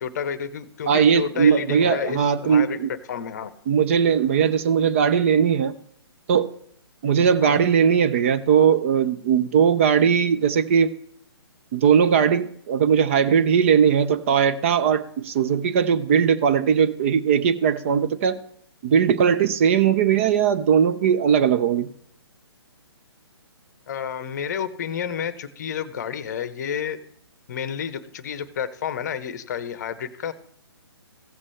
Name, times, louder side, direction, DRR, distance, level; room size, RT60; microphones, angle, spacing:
voice 1, 0.0-3.5 7.4-7.6 23.9-27.0 27.5-30.3, left 8 dB, 40° left, 15 dB, 0.8 m, -30 dB
voice 2, 0.9-2.9 3.7-5.7 6.3-6.5 7.0-10.9 11.7-18.4 18.8-21.9, right 7 dB, 30° right, 10 dB, 0.5 m, -19 dB
15.5 x 7.4 x 3.2 m, 0.64 s
figure-of-eight pair, 135°, 14 cm